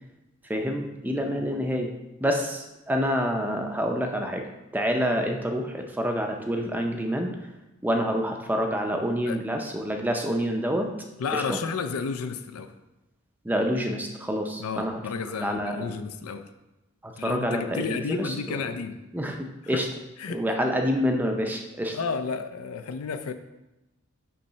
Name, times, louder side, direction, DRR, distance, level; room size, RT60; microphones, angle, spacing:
voice 1, 0.5-1.9 2.2-4.5 4.7-7.5 7.8-10.9 11.3-11.6 13.4-15.0 15.3-15.9 17.0-18.6 19.1-19.9 20.3-22.0, equal, 10° right, 3 dB, 0.4 m, -27 dB
voice 2, 11.2-12.7 14.6-16.5 17.2-19.0 19.7-19.9 20.2-20.4 21.9-23.3, left 5 dB, 80° left, 9 dB, 0.5 m, -32 dB
6.8 x 3.2 x 5.6 m, 0.98 s
head